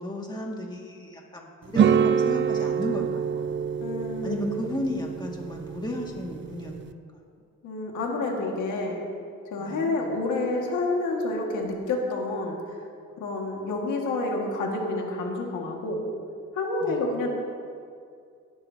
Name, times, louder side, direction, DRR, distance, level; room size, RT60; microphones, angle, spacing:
voice 1, 0.0-3.4 4.2-6.9 9.6-9.9 16.8-17.0, left 1 dB, 15° left, -1 dB, 2.1 m, -34 dB
sound 1, 1.7-6.9, right 7 dB, 40° right, 0.5 m, -26 dB
voice 2, 3.8-4.5 7.6-9.0 9.5-12.6 13.2-16.0 16.5-17.3, left 2 dB, 80° left, 0 dB, 2.0 m, -29 dB
18.5 x 12.5 x 2.9 m, 2.3 s
cardioid pair, 90°, 30 cm